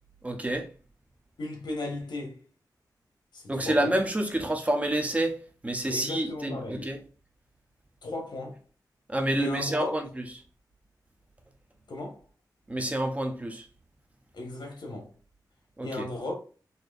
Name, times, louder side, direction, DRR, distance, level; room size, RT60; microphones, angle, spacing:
voice 1, 0.2-0.7 3.5-5.4 5.6-7.0 9.1-10.0 12.7-13.6 15.8-15.9, right 1 dB, 20° right, 0.7 m, -28 dB
voice 2, 1.4-2.4 3.3-4.0 5.9-6.9 8.0-8.6 9.4-9.9 11.9-12.2 14.3-15.1 15.8-16.3, left 2 dB, 80° left, 1.1 m, -35 dB
4.3 x 2.7 x 2.3 m
wide cardioid pair, 110°, 7 cm